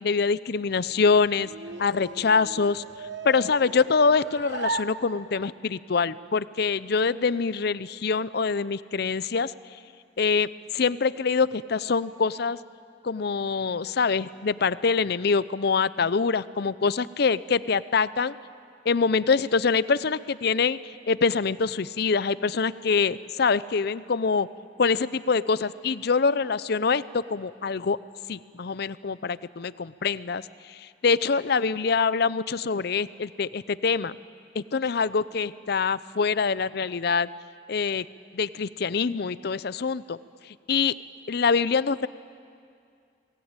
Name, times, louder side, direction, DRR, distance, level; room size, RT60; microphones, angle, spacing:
voice 1, 0.0-1.5 1.8-2.8 3.2-9.5 10.2-12.6 13.0-18.3 18.9-24.5 24.8-28.0 28.3-30.4 30.7-34.2 34.5-37.3 37.7-38.0 38.3-40.2 40.7-40.9 41.3-42.1, left 5 dB, 60° left, 17 dB, 0.6 m, -25 dB
sound 1, 0.6-5.7, right 3 dB, 65° right, 1.1 m, -37 dB
28.0 x 19.0 x 8.9 m, 2.3 s
head